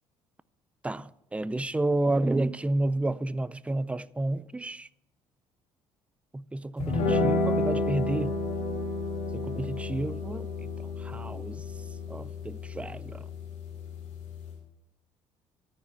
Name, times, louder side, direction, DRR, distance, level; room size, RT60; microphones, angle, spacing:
voice 1, 0.8-4.9 6.3-8.4 9.5-10.7 11.0-11.6 12.1-13.3, right 2 dB, 10° right, 0.4 m, -30 dB
sound 1, 6.8-14.6, left 2 dB, 90° left, 3.8 m, -31 dB
14.0 x 4.8 x 8.4 m
supercardioid pair, 80°, 12 cm